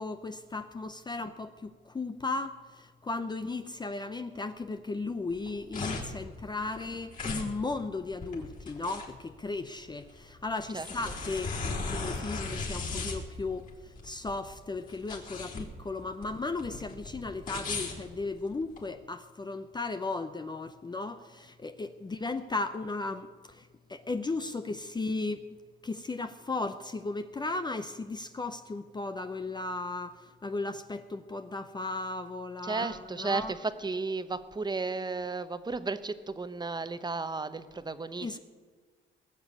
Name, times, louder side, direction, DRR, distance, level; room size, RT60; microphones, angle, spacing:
voice 1, 0.0-25.5 25.8-33.5 38.2-38.4, left 3 dB, 20° left, 9 dB, 0.6 m, -36 dB
sound 1, 5.3-18.8, left 3 dB, 45° left, 4.0 m, -38 dB
voice 2, 32.6-38.4, right 3 dB, 20° right, 11 dB, 0.9 m, -34 dB
19.5 x 7.1 x 8.4 m, 1.5 s
cardioid pair, 90°, 20 cm